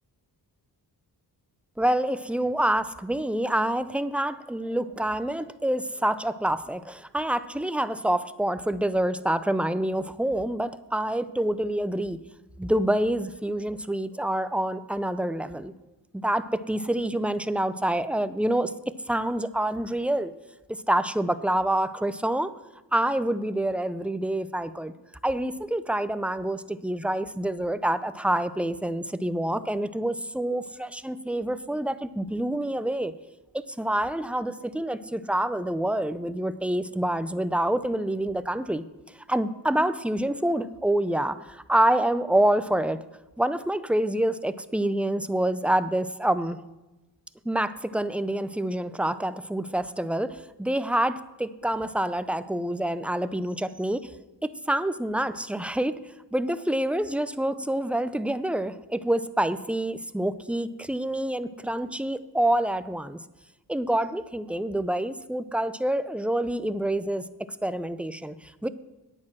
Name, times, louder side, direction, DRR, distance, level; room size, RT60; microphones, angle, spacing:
voice 1, 1.8-12.2 12.6-15.7 16.1-18.7 19.1-20.3 20.7-22.5 22.9-24.9 25.2-33.1 33.5-38.9 39.3-43.0 43.4-46.6 47.4-54.1 54.4-56.0 56.3-63.2 63.7-67.2 67.6-68.7, right 1 dB, 5° right, 13 dB, 0.5 m, -27 dB
9.8 x 8.9 x 6.0 m, 1.0 s
cardioid pair, 80°, 41 cm